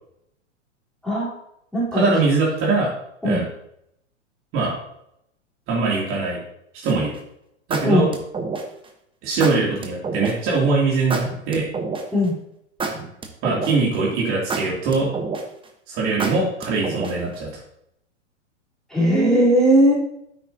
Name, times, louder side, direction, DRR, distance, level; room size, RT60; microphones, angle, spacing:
voice 1, 1.0-1.4 1.7-2.1 3.2-3.4 7.8-8.1 12.1-12.3 18.9-19.9, equal, ahead, -7 dB, 3.9 m, -18 dB
voice 2, 1.9-2.9 3.2-3.5 4.5-4.7 5.7-6.4 6.7-7.1 7.7-8.1 9.2-11.7 13.4-15.1 15.9-17.5, right 3 dB, 35° right, -4 dB, 3.0 m, -22 dB
sound 1, 6.9-7.2 7.7-8.9 9.4-10.3 11.1-12.3 12.8-13.9 14.5-15.6 16.2-17.3, right 4 dB, 15° right, 1.2 m, -28 dB
9.9 x 8.4 x 2.9 m, 0.77 s
hypercardioid pair, 105°, 36 cm